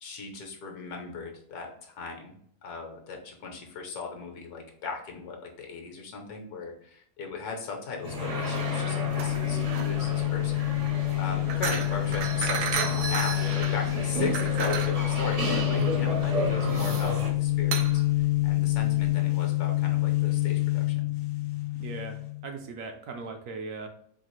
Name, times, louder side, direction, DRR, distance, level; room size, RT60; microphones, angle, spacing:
voice 1, 0.0-2.3 2.6-21.1, left 4 dB, 70° left, 3 dB, 1.3 m, -38 dB
sound 1, 7.9-22.5, left 18 dB, 90° left, 1.2 m, -27 dB
sound 2, 8.0-17.3, right 2 dB, 50° right, 0.4 m, -33 dB
sound 3, 9.1-19.1, right 7 dB, 90° right, 1.2 m, -35 dB
voice 2, 21.8-23.9, right 4 dB, 70° right, 4 dB, 0.8 m, -39 dB
4.9 x 2.4 x 3.0 m, 0.65 s
omnidirectional pair, 1.7 m